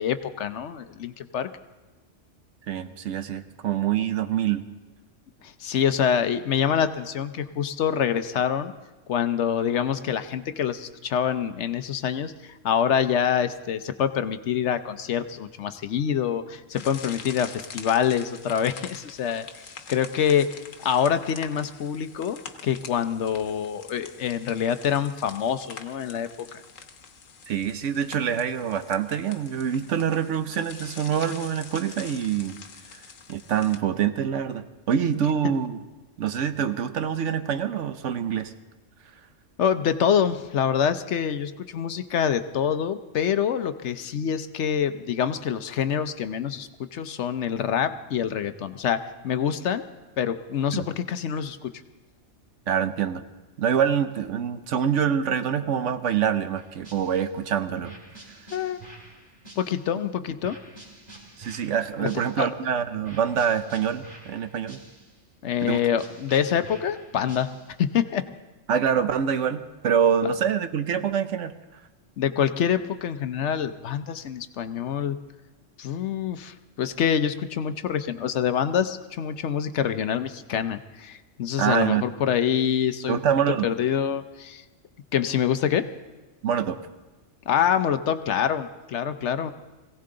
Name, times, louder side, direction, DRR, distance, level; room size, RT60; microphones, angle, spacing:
voice 1, 0.0-1.5 5.4-8.7 9.1-19.4 19.9-26.5 39.6-49.8 50.2-51.7 58.5-58.8 59.6-60.6 62.0-62.1 62.4-62.5 65.4-67.5 67.8-68.2 72.2-75.2 75.8-83.2 83.6-84.6 85.1-85.9 87.5-89.5, left 8 dB, 70° left, 10 dB, 1.0 m, -26 dB
voice 2, 2.7-4.6 27.5-32.6 33.3-35.8 36.2-38.5 50.7-50.9 52.7-53.2 53.6-57.9 61.4-64.8 65.6-65.8 68.7-71.6 81.6-82.0 83.1-83.7 86.4-86.8, right 8 dB, 70° right, 10 dB, 1.1 m, -25 dB
sound 1, 16.7-33.8, left 6 dB, 90° left, 1.4 m, -45 dB
sound 2, 56.6-57.4 57.8-60.0 60.4-62.6 63.0-65.3 65.6-67.9, right 2 dB, 35° right, 2.0 m, -48 dB
22.0 x 16.5 x 3.8 m, 1.2 s
omnidirectional pair, 1.3 m